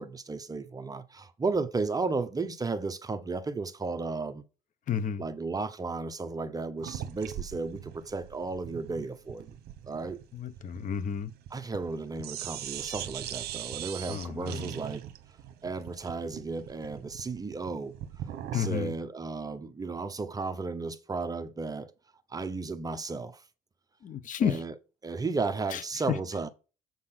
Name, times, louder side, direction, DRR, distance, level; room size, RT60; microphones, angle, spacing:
voice 1, 0.0-4.4 5.2-9.6 9.9-10.2 11.5-15.0 15.6-18.0 18.5-21.9 22.3-23.4 24.4-24.7 25.0-26.5, right 3 dB, 20° right, 0.8 m, -34 dB
voice 2, 4.9-5.2 10.3-11.3 14.1-14.7 18.5-18.9 24.0-24.6 25.7-25.8 26.1-26.2, left 8 dB, 50° left, 1.0 m, -31 dB
sound 1, 6.8-11.9 12.2-18.8, right 11 dB, 70° right, 1.0 m, -41 dB
7.6 x 3.9 x 5.9 m
cardioid pair, 110°, 17 cm